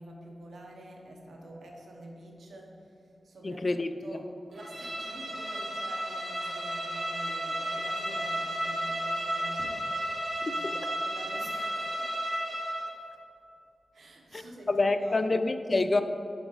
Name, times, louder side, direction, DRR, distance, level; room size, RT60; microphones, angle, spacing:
voice 1, 0.0-2.9 3.2-12.1 13.9-15.2, right 1 dB, 85° right, 0 dB, 0.9 m, -47 dB
voice 2, 3.4-4.1 10.4-10.7 14.3-16.0, left 2 dB, 45° left, 10 dB, 0.3 m, -28 dB
Bowed string instrument, 4.6-12.9, right 1 dB, 40° right, 1.2 m, -33 dB
6.9 x 4.9 x 3.9 m, 2.8 s
cardioid pair, 70°, 0 cm